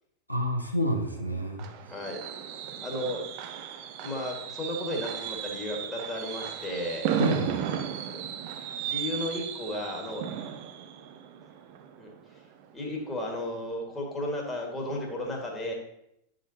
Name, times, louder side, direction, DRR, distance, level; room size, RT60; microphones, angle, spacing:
voice 1, 0.3-1.7 7.2-7.6, equal, 90° right, 0 dB, 0.9 m, -28 dB
Fireworks, 0.9-12.6 13.0-13.3 13.6-13.7, right 9 dB, 45° right, 0.5 m, -35 dB
voice 2, 2.8-3.2 4.0-7.1 8.8-10.2 12.0-12.1 12.7-15.7, left 1 dB, 15° left, -1 dB, 1.7 m, -34 dB
9.8 x 5.1 x 2.8 m, 0.79 s
figure-of-eight pair, 90°, 0 cm